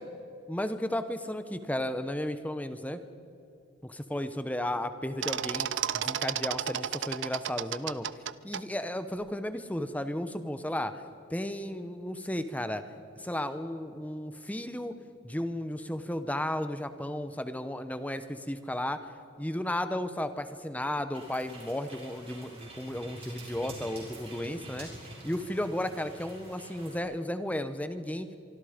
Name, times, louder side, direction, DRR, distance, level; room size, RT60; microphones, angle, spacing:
voice 1, 0.5-3.0 3.8-5.7 5.9-8.1 8.4-10.9 11.3-12.8 13.2-14.9 15.2-19.0 19.4-24.9 25.2-28.3, left 1 dB, 5° left, 10 dB, 0.9 m, -34 dB
sound 1, 5.2-8.6, right 9 dB, 60° right, 0.5 m, -32 dB
sound 2, 21.1-27.0, right 2 dB, 30° right, 5.7 m, -47 dB
25.0 x 24.5 x 5.1 m, 2.6 s
head